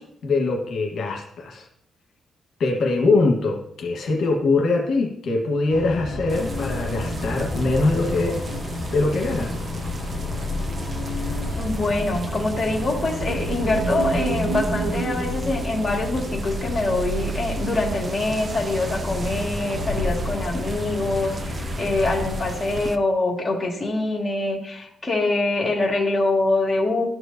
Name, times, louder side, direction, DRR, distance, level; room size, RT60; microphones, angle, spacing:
voice 1, 0.0-1.7 2.6-8.4 8.9-9.6, left 3 dB, 70° left, 0 dB, 1.3 m, -22 dB
sound 1, 5.7-22.5, left 1 dB, 50° left, 1.6 m, -30 dB
sound 2, 6.3-23.0, right 4 dB, 35° right, 0.5 m, -36 dB
voice 2, 11.6-27.1, left 2 dB, 25° left, -3 dB, 1.8 m, -24 dB
sound 3, 12.5-16.5, right 3 dB, 70° right, 2.3 m, -30 dB
12.0 x 4.8 x 2.6 m, 0.73 s
cardioid pair, 120°, 0 cm